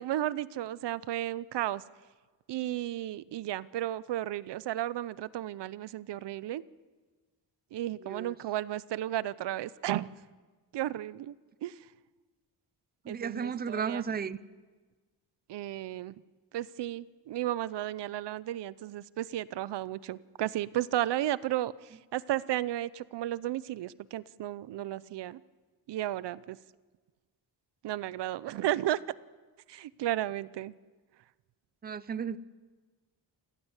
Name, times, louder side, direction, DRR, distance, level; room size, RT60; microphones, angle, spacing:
voice 1, 0.0-1.8 2.5-6.6 7.7-10.2 10.7-11.3 11.6-11.7 13.1-14.0 15.5-16.1 16.5-21.7 22.1-25.4 25.9-26.6 27.8-29.0 29.7-30.7, right 13 dB, 85° right, 0.7 m, -33 dB
voice 2, 8.0-8.4 13.0-14.4 31.8-32.4, right 6 dB, 25° right, 0.6 m, -34 dB
28.0 x 15.5 x 8.1 m
wide cardioid pair, 155°, 41 cm